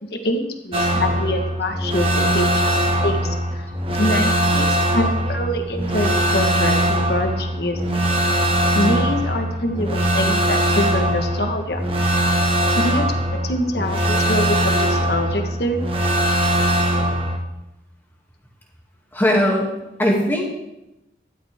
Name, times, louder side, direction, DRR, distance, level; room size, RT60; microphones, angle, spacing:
voice 1, 0.0-8.0 8.7-11.9 12.8-13.0 13.3-15.9, left 1 dB, 60° left, 5 dB, 1.5 m, -25 dB
sound 1, 0.7-17.4, right 1 dB, 30° right, 1.5 m, -21 dB
voice 2, 19.1-19.7 20.0-20.4, equal, 10° left, -2 dB, 2.5 m, -18 dB
13.0 x 13.0 x 3.7 m, 0.90 s
head